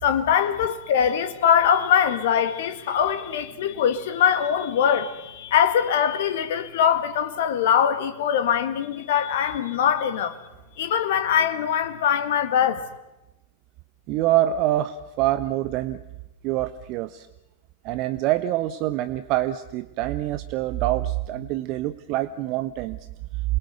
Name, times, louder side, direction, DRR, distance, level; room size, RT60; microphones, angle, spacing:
voice 1, 0.0-10.4 10.8-12.8, left 8 dB, 55° left, 1.9 m, -22 dB
voice 2, 14.1-16.0 16.4-17.3 17.8-23.0, right 14 dB, 40° right, 0.8 m, -25 dB
28.0 x 21.5 x 8.0 m
figure-of-eight pair, 90°, 0 cm